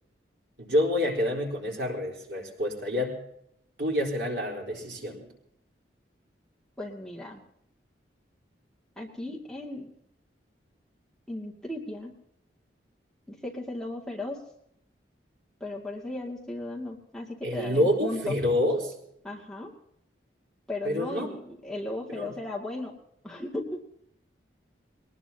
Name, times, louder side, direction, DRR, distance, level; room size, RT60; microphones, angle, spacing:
voice 1, 0.6-3.2 3.8-5.3 17.4-18.9 20.8-21.3 22.1-22.3, left 1 dB, 65° right, -1 dB, 4.3 m, -27 dB
voice 2, 6.8-7.4 9.0-9.9 11.3-12.1 13.3-14.4 15.6-18.4 19.2-19.7 20.7-22.9 23.2-23.8, left 2 dB, 5° left, -3 dB, 2.3 m, -36 dB
22.5 x 19.5 x 2.9 m, 0.74 s
head